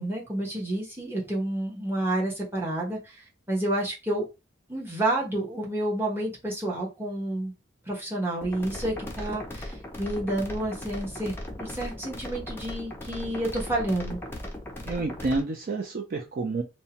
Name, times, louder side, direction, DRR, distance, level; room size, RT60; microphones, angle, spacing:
voice 1, 0.0-3.1 3.5-4.3 4.7-7.5 7.9-14.2, right 1 dB, 10° right, -4 dB, 0.9 m, -29 dB
sound 1, 8.4-15.4, left 1 dB, 10° left, 0.4 m, -38 dB
voice 2, 14.9-16.6, right 3 dB, 45° right, 2 dB, 0.4 m, -29 dB
2.6 x 2.1 x 2.8 m, 0.26 s
head